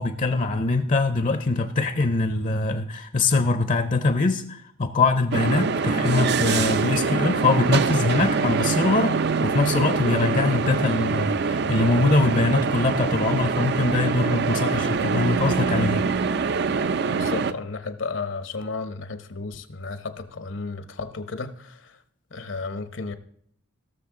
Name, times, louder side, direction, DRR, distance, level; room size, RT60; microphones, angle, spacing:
voice 1, 0.0-16.1, left 3 dB, 40° left, 0.6 m, -23 dB
sound 1, 5.3-17.5, right 5 dB, 55° right, 0.4 m, -24 dB
voice 2, 17.1-22.0 22.3-23.2, left 4 dB, 65° left, 0.9 m, -33 dB
17.0 x 6.6 x 3.7 m
head